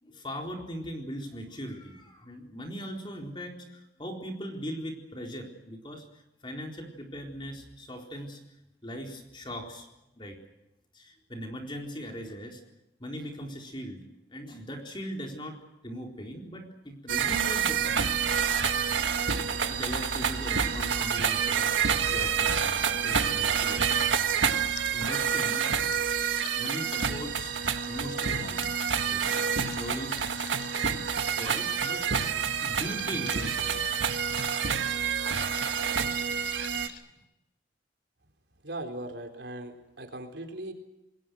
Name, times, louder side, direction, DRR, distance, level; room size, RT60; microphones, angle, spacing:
voice 1, 0.0-6.0 6.4-8.4 8.8-9.9 10.2-10.4 10.9-12.6 13.0-14.0 14.3-15.6 15.8-18.4 18.9-19.1 19.6-23.8 24.8-25.9 26.5-27.5 27.9-30.4 31.3-32.0 32.6-34.0 36.3-36.4, equal, 25° left, 2 dB, 4.0 m, -40 dB
sound 1, 17.1-36.9, right 7 dB, 90° right, 1.8 m, -28 dB
sound 2, 19.5-37.0, left 8 dB, 65° left, 3.2 m, -48 dB
voice 2, 38.6-40.7, right 1 dB, 70° right, 4 dB, 4.0 m, -39 dB
28.0 x 21.5 x 6.4 m, 0.92 s
head